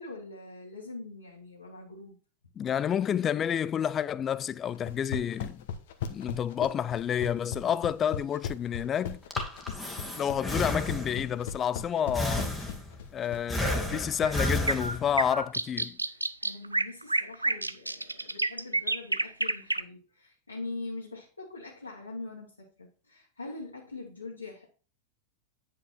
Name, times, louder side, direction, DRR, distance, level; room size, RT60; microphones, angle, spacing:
voice 1, 0.0-2.2 16.1-24.6, left 3 dB, 80° left, 2.0 m, -43 dB
voice 2, 2.6-5.6 6.1-9.2 10.2-12.6 13.1-16.0, left 9 dB, 25° left, 0.4 m, -29 dB
sound 1, 4.8-14.4, left 8 dB, 55° left, 1.1 m, -37 dB
Breathing, 9.1-11.4 12.1-13.1 13.5-15.3, left 1 dB, 5° left, 1.5 m, -32 dB
sound 2, 14.3-19.8, right 2 dB, 85° right, 0.4 m, -29 dB
9.4 x 5.2 x 4.3 m
figure-of-eight pair, 90°, 0 cm